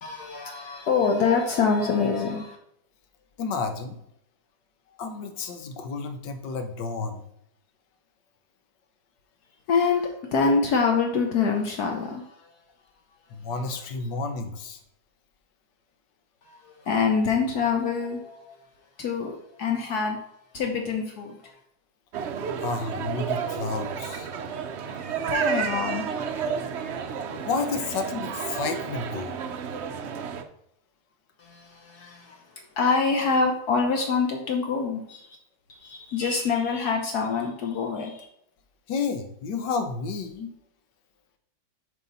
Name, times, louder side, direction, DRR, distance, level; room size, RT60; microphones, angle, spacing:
voice 1, 0.0-2.6 9.7-12.6 13.3-13.4 16.4-18.6 19.0-20.2 20.5-21.6 24.9-26.1 31.4-35.4 35.7-38.2, left 5 dB, 65° left, 2 dB, 1.4 m, -26 dB
voice 2, 3.4-4.0 5.0-7.2 13.3-14.8 22.6-24.3 27.3-29.4 38.9-40.5, left 4 dB, 85° left, 7 dB, 1.6 m, -31 dB
sound 1, 22.1-30.4, right 7 dB, 65° right, 0.7 m, -31 dB
8.1 x 4.8 x 4.0 m, 0.75 s
omnidirectional pair, 1.8 m